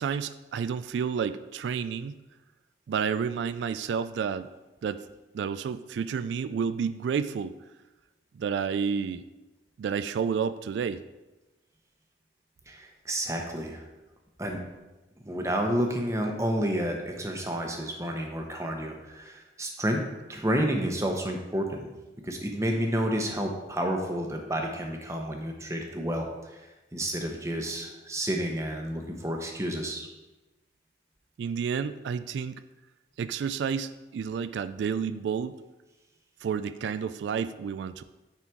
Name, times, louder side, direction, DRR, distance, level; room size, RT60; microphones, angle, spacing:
voice 1, 0.0-2.1 2.9-4.5 4.8-5.0 5.3-7.5 8.4-9.2 9.8-11.0 31.4-32.6 33.2-35.6 36.4-38.0, right 6 dB, 85° right, 13 dB, 0.3 m, -30 dB
voice 2, 12.7-13.8 14.4-14.6 15.2-20.0 20.3-21.9 22.2-26.6 26.9-30.1, equal, 15° right, 2 dB, 0.9 m, -30 dB
9.3 x 4.1 x 4.5 m, 1.1 s
head